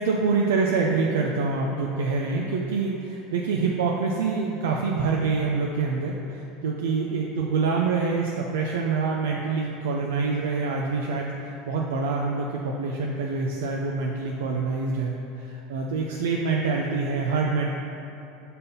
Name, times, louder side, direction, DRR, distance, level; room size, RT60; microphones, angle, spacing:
voice 1, 0.1-17.7, right 4 dB, 85° right, -1 dB, 0.5 m, -26 dB
5.3 x 4.2 x 5.4 m, 2.9 s
supercardioid pair, 110°, 0 cm